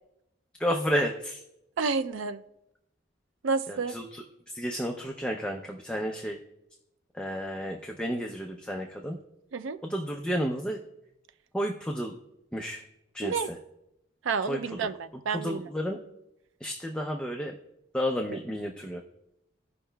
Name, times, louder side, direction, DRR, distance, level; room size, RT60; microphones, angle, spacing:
voice 1, 0.6-1.4 3.7-6.4 7.1-9.2 9.8-10.8 11.5-12.1 12.5-12.8 13.1-13.6 14.5-14.9 15.3-16.0 16.6-17.5 17.9-19.0, equal, 5° left, 1 dB, 0.5 m, -32 dB
voice 2, 1.8-2.4 3.4-4.0 9.5-9.8 13.2-13.5 14.2-15.7, right 5 dB, 85° right, 11 dB, 0.4 m, -30 dB
16.0 x 5.5 x 2.2 m, 0.85 s
head